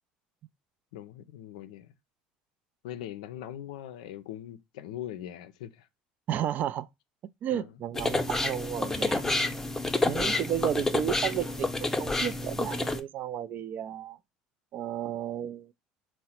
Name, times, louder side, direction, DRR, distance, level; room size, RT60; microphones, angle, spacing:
voice 1, 0.9-1.9 2.8-5.9 7.5-7.7 9.2-9.6 10.8-10.9, left 11 dB, 80° left, 0.5 m, -42 dB
voice 2, 6.3-6.9 7.4-9.2 10.0-14.2 14.7-15.7, right 10 dB, 50° right, 0.3 m, -33 dB
sound 1, 7.9-13.0, left 2 dB, 10° left, 0.7 m, -29 dB
3.8 x 2.1 x 4.2 m
hypercardioid pair, 70°, 4 cm